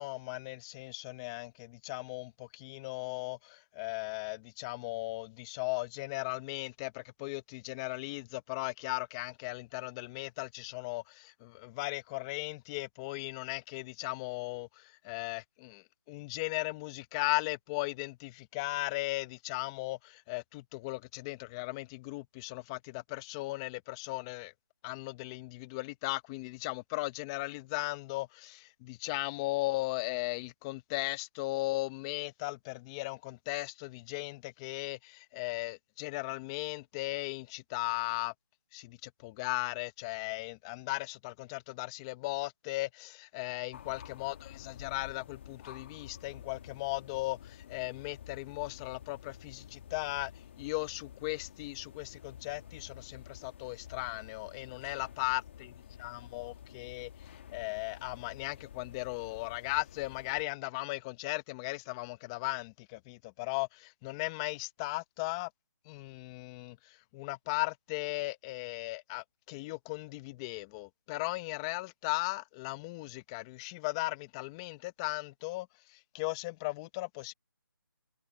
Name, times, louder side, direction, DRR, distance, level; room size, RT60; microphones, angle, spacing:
voice 1, 0.0-24.5 24.8-38.3 38.7-50.3 50.6-55.4 56.0-65.5 65.9-77.3, left 22 dB, 15° left, 0.8 m, -37 dB
sound 1, 43.7-60.4, left 9 dB, 30° left, 2.1 m, -50 dB
figure-of-eight pair, 165°, 12 cm